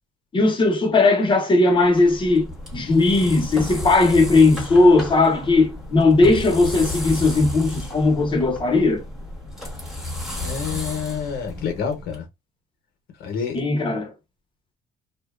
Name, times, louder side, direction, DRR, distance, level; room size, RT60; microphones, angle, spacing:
voice 1, 0.3-9.0 13.5-14.1, left 3 dB, 30° left, 0.7 m, -18 dB
sound 1, 1.8-12.2, left 1 dB, 5° right, 1.1 m, -33 dB
voice 2, 10.4-12.3 13.2-13.6, left 6 dB, 70° left, 0.8 m, -28 dB
2.6 x 2.2 x 2.3 m
cardioid pair, 110°, 17 cm